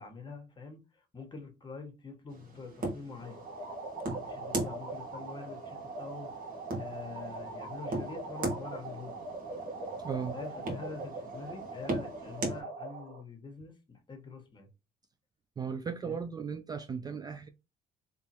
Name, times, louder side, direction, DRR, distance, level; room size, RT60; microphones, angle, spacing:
voice 1, 0.0-3.4 4.1-6.3 6.7-9.2 10.3-14.7 16.0-16.2, left 4 dB, 30° left, 1.2 m, -45 dB
sound 1, 2.3-12.6, right 2 dB, 55° right, 1.4 m, -40 dB
sound 2, 3.2-13.2, right 2 dB, 75° right, 1.4 m, -42 dB
voice 2, 10.0-10.4 15.6-17.5, right 6 dB, 25° right, 0.3 m, -36 dB
3.5 x 3.0 x 2.9 m
cardioid pair, 110°, 17 cm